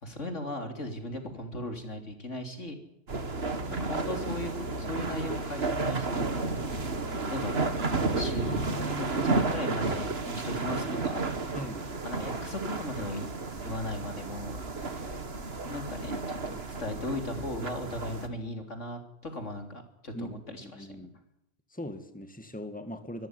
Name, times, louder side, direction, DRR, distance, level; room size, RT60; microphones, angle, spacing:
voice 1, 0.0-2.8 3.7-6.4 7.3-7.7 8.1-8.6 8.8-11.3 12.0-13.3 13.6-15.2 15.7-16.2 16.5-21.1, left 1 dB, 75° left, 5 dB, 3.8 m, -37 dB
sound 1, 3.1-18.3, right 3 dB, 55° right, 2.1 m, -32 dB
voice 2, 8.5-9.1 11.5-11.9 20.1-20.3 20.6-21.1 21.7-23.3, equal, 5° left, 8 dB, 2.0 m, -40 dB
24.5 x 14.0 x 9.8 m, 0.83 s
omnidirectional pair, 1.3 m